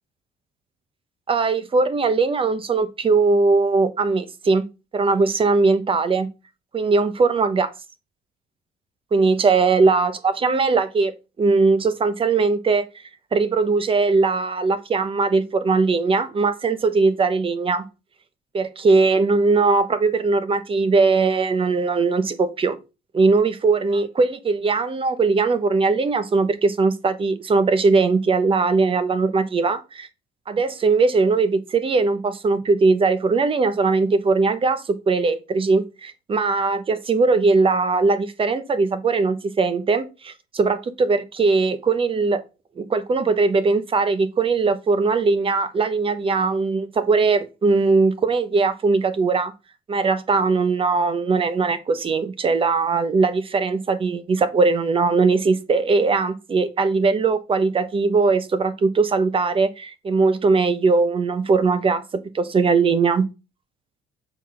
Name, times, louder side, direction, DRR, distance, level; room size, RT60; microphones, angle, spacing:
voice 1, 1.3-4.6 4.9-6.3 6.7-7.7 9.1-11.1 11.4-12.9 13.3-17.8 18.5-22.8 23.1-30.1 30.5-42.4 42.8-49.5 49.9-63.3, right 4 dB, 30° right, 1.0 m, -20 dB
7.2 x 4.0 x 5.7 m
cardioid pair, 110°, 17 cm